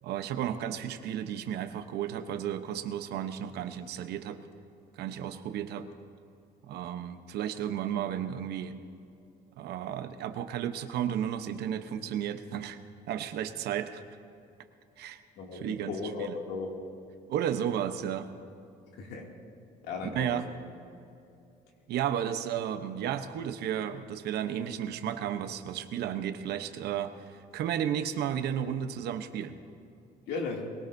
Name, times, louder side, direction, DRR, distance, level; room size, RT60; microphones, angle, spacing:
voice 1, 0.0-4.4 4.9-5.9 6.6-8.8 9.6-12.8 13.1-14.0 15.0-15.2 15.5-16.4 17.3-18.3 20.0-20.5 21.9-29.6, right 9 dB, 75° right, 9 dB, 0.9 m, -33 dB
voice 2, 15.4-16.7 19.0-19.3 19.8-20.4 30.3-30.6, left 4 dB, 80° left, -1 dB, 2.6 m, -36 dB
22.0 x 17.5 x 2.7 m, 2.6 s
cardioid pair, 110°, 17 cm